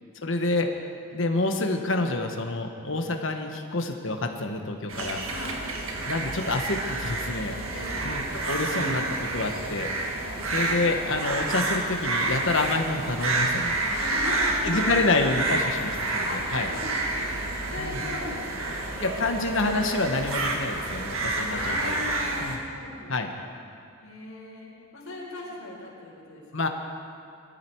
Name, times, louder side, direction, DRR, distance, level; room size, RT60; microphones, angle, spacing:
voice 1, 0.2-0.7 1.1-5.2 6.0-7.6 8.0-9.9 10.5-13.8 14.6-16.7 17.8-18.0 19.0-22.0 22.4-22.6 23.1-23.3 26.5-26.7, left 2 dB, 60° left, 4 dB, 1.3 m, -28 dB
sound 1, 4.9-22.6, right 2 dB, 75° right, 1.8 m, -29 dB
voice 2, 5.3-5.6 7.7-8.1 10.2-10.5 13.8-15.1 16.1-19.4 21.5-23.5 24.0-26.7, left 2 dB, 80° left, -3 dB, 4.4 m, -38 dB
21.0 x 13.5 x 4.7 m, 2.3 s
head